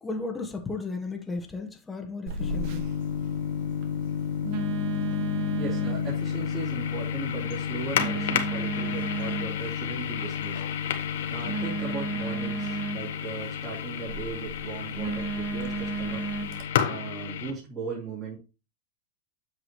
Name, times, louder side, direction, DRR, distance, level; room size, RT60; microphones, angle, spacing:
voice 1, 0.0-2.8, left 3 dB, 15° left, 1.3 m, -34 dB
Telephone, 2.3-16.6, right 4 dB, 60° right, 1.6 m, -35 dB
sound 1, 2.4-17.5, left 8 dB, 75° left, 1.2 m, -31 dB
voice 2, 5.6-10.6 11.3-16.2 16.9-18.4, right 4 dB, 30° right, 3.9 m, -37 dB
8.2 x 5.9 x 3.1 m
hypercardioid pair, 120°, 0 cm